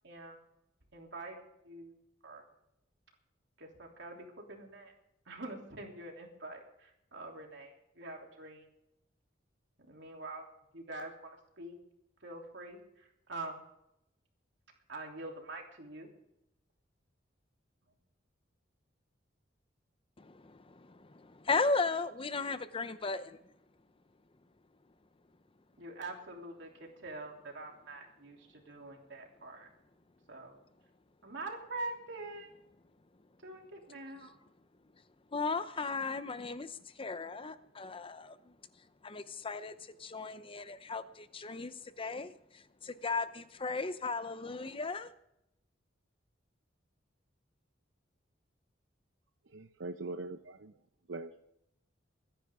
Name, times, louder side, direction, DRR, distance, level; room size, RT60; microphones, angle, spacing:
voice 1, 0.0-0.5 0.9-2.0 2.2-2.4 3.6-4.9 5.2-8.7 9.8-10.5 10.7-11.8 12.2-13.6 14.9-16.1 25.8-29.7 30.3-30.6 31.2-32.6 33.4-34.4, right 2 dB, 70° right, 3.2 m, -45 dB
voice 2, 20.2-23.4 35.3-38.5 39.0-45.1, left 4 dB, 30° left, 0.7 m, -36 dB
voice 3, 49.5-50.7 51.1-51.5, right 3 dB, 90° right, 0.7 m, -42 dB
23.5 x 10.0 x 3.7 m
head